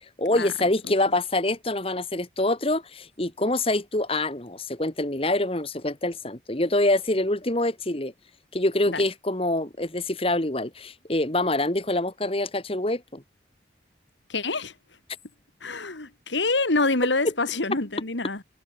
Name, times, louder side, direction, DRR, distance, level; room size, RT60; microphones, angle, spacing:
voice 1, 0.2-8.1 8.5-13.2, left 1 dB, 30° left, 1.9 m, -25 dB
voice 2, 14.3-14.7 15.6-18.4, left 3 dB, 85° left, 2.6 m, -26 dB
head